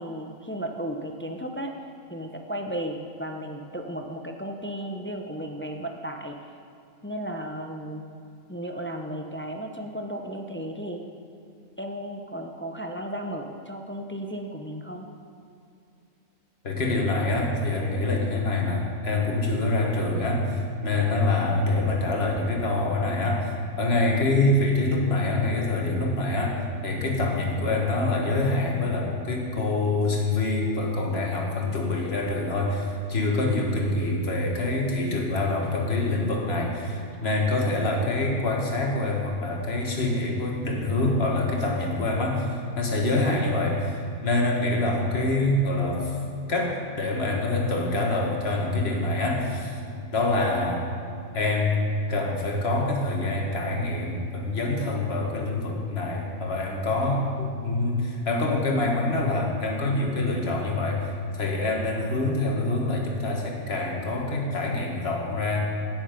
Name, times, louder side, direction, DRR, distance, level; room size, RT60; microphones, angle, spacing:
voice 1, 0.0-1.7 2.1-6.4 7.0-8.0 8.5-11.0 11.8-15.1, right 1 dB, 15° left, 3 dB, 0.4 m, -34 dB
voice 2, 16.6-46.2 46.5-49.8 50.1-50.9 51.3-65.7, left 2 dB, 45° left, 0 dB, 1.8 m, -25 dB
17.5 x 7.1 x 5.1 m, 2.5 s
omnidirectional pair, 1.5 m